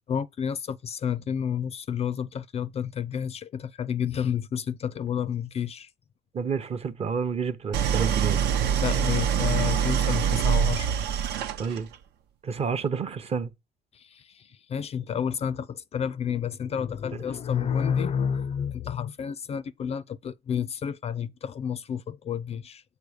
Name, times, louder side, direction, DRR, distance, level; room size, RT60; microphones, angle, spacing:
voice 1, 0.1-5.9 8.8-10.9 13.9-22.8, left 8 dB, 40° left, 0.4 m, -30 dB
voice 2, 6.3-8.4 11.6-11.9 12.4-13.5, right 6 dB, 35° right, 0.7 m, -29 dB
Idling, 7.7-12.0, right 8 dB, 80° right, 0.7 m, -25 dB
6.8 x 4.2 x 4.9 m
cardioid pair, 110°, 17 cm